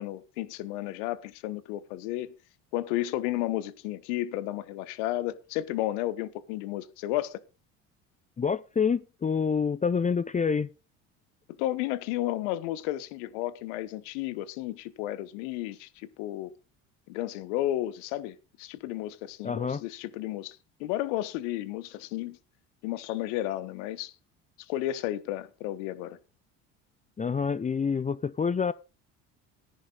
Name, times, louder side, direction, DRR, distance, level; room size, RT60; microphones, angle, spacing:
voice 1, 0.0-2.3 2.7-7.4 11.6-16.6 17.1-22.4 22.8-24.1 24.6-26.2, left 14 dB, 80° left, 1.3 m, -33 dB
voice 2, 8.4-10.7 19.4-19.8 27.2-28.7, left 6 dB, 20° left, 0.6 m, -27 dB
14.0 x 10.5 x 4.0 m
supercardioid pair, 80°, 36 cm